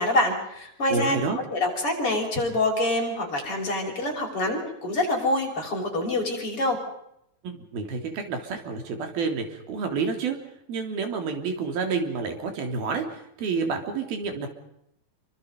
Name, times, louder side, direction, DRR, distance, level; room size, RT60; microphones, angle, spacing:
voice 1, 0.0-1.2 1.5-6.8, left 1 dB, 35° left, 1 dB, 7.0 m, -26 dB
voice 2, 0.9-1.4 7.4-10.4 10.7-14.5, right 4 dB, 90° right, 5 dB, 5.4 m, -29 dB
28.0 x 25.0 x 5.5 m, 0.77 s
omnidirectional pair, 4.2 m